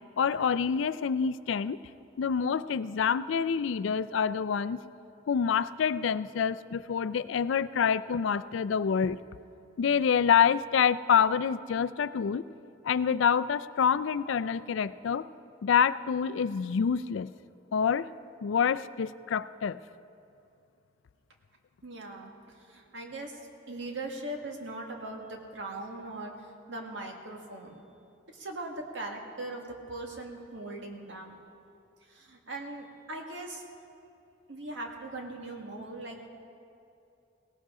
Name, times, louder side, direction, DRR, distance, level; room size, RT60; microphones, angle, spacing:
voice 1, 0.2-1.8 2.2-4.8 5.3-9.2 9.8-12.4 12.8-15.3 15.6-17.3 17.7-18.1 18.4-19.8, left 7 dB, 75° left, 15 dB, 0.4 m, -27 dB
voice 2, 21.8-22.3 22.7-23.3 23.7-26.3 26.7-27.8 28.3-31.4 32.1-33.6 34.5-36.2, right 2 dB, 65° right, 1 dB, 1.8 m, -40 dB
18.0 x 17.5 x 3.7 m, 2.6 s
head